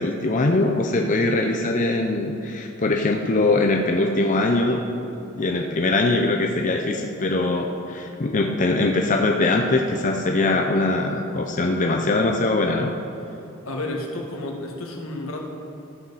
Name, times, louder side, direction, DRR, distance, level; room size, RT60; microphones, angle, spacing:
voice 1, 0.0-4.8 5.3-12.9, left 2 dB, 35° left, 2 dB, 0.6 m, -22 dB
voice 2, 13.7-15.4, left 2 dB, 80° left, 0 dB, 1.7 m, -31 dB
14.5 x 11.0 x 4.1 m, 2.7 s
head